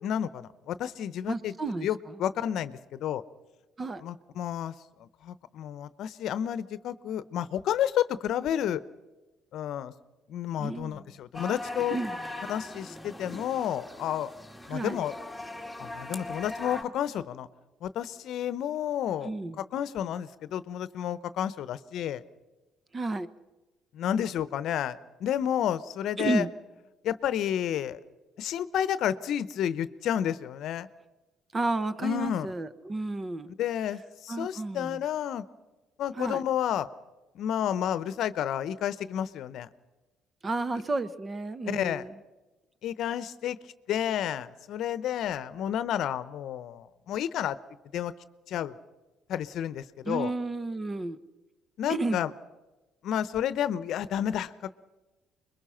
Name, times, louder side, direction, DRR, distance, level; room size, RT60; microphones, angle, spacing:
voice 1, 0.0-1.5 1.8-3.2 4.0-8.8 9.5-9.9 10.3-12.0 12.5-14.3 14.7-15.1 15.8-17.5 17.8-22.2 23.9-26.5 27.0-28.0 28.4-30.9 32.0-32.5 33.6-35.4 36.0-36.9 37.3-39.7 41.7-42.1 42.8-47.6 47.9-48.1 48.5-48.8 49.3-50.3 51.8-52.3 53.0-54.7, left 10 dB, 65° left, 15 dB, 0.9 m, -31 dB
voice 2, 1.3-1.9 3.8-4.0 10.6-11.0 11.9-12.2 14.7-15.0 19.2-19.6 22.9-23.3 26.2-26.5 31.5-33.5 34.3-35.0 36.2-36.4 40.4-42.1 50.1-51.2 51.9-52.2, right 2 dB, 30° right, 13 dB, 1.2 m, -31 dB
sound 1, 11.3-16.8, left 2 dB, ahead, 2.2 m, -40 dB
25.5 x 22.0 x 5.8 m, 1.1 s
supercardioid pair, 65°, 0 cm